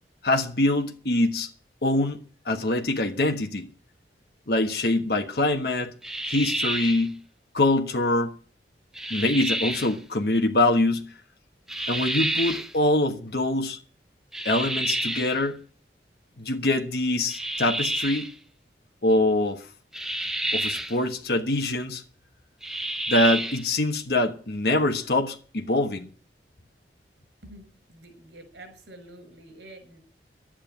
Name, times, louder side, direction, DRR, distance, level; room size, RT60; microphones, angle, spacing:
voice 1, 0.2-1.5 1.8-3.7 4.5-5.9 6.3-7.2 7.5-8.4 9.1-11.1 11.9-13.8 14.4-15.6 16.4-18.3 19.0-19.6 20.5-22.0 23.1-26.1, left 2 dB, 60° left, 1.3 m, -24 dB
sound 1, 6.0-7.1 8.9-9.9 11.7-12.7 14.3-15.4 17.3-18.3 19.9-21.0 22.6-23.7, equal, 5° right, 0.7 m, -29 dB
voice 2, 27.4-30.0, right 1 dB, 85° right, 6.1 m, -47 dB
11.5 x 8.9 x 8.8 m
head